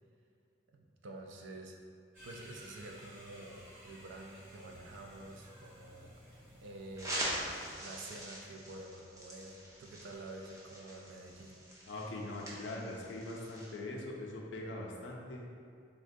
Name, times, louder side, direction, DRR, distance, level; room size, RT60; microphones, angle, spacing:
voice 1, 0.7-1.8 2.2-7.5 7.8-11.6, right 2 dB, 70° right, 1 dB, 0.4 m, -49 dB
sound 1, 2.1-7.7, equal, 45° right, 1.0 m, -55 dB
sound 2, 7.0-13.8, right 1 dB, 15° right, 0.5 m, -43 dB
voice 2, 11.8-15.4, left 2 dB, 75° left, -1 dB, 0.4 m, -42 dB
3.6 x 2.1 x 2.6 m, 2.4 s
head